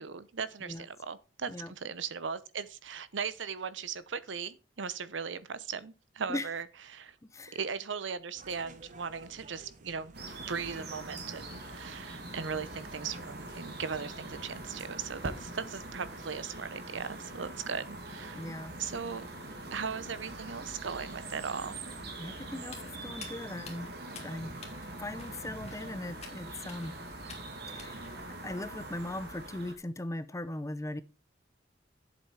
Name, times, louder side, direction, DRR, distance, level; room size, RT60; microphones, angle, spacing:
voice 1, 0.0-7.2 7.5-10.1 10.5-18.4 18.8-19.3 19.7-22.1, right 6 dB, 80° right, 0.7 m, -38 dB
sound 1, 8.3-16.3, right 2 dB, 45° right, 1.2 m, -55 dB
sound 2, 10.1-29.7, right 2 dB, 60° right, 2.1 m, -43 dB
voice 2, 18.3-18.8 22.2-23.9 24.2-24.5 25.0-27.0 27.7-28.0 28.4-31.0, left 1 dB, 15° left, 0.6 m, -39 dB
Walk footsteps, 22.6-28.2, left 4 dB, 35° left, 2.4 m, -51 dB
7.8 x 7.3 x 4.8 m
head